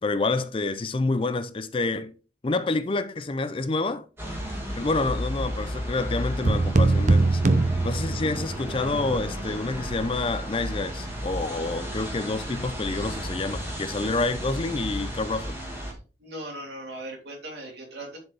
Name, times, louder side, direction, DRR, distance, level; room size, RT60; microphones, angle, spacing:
voice 1, 0.0-2.1 2.4-4.0 4.8-7.4 7.8-15.6, left 3 dB, 30° left, 0.4 m, -28 dB
sound 1, 4.2-15.9, equal, 15° right, 2.1 m, -33 dB
sound 2, 6.4-8.7, right 2 dB, 40° right, 0.6 m, -22 dB
voice 2, 16.2-18.2, right 1 dB, 60° right, 3.2 m, -38 dB
10.5 x 4.4 x 3.4 m
head